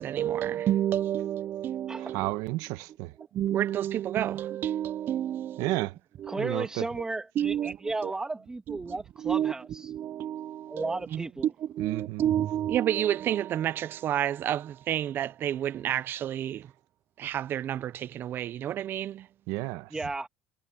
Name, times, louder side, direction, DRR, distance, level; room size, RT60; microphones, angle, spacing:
voice 1, 0.0-2.3 3.2-5.9 6.2-6.5 7.4-8.1 8.7-11.2 11.6-16.7 17.2-19.3, right 11 dB, 40° right, 0.4 m, -30 dB
voice 2, 2.0-3.1 5.6-6.0 6.4-6.9 11.8-12.3 19.5-19.9, right 19 dB, 85° right, 1.1 m, -32 dB
voice 3, 6.3-9.9 10.7-11.5 19.9-20.3, right 2 dB, 10° right, 2.1 m, -34 dB
cardioid pair, 160°, 6 cm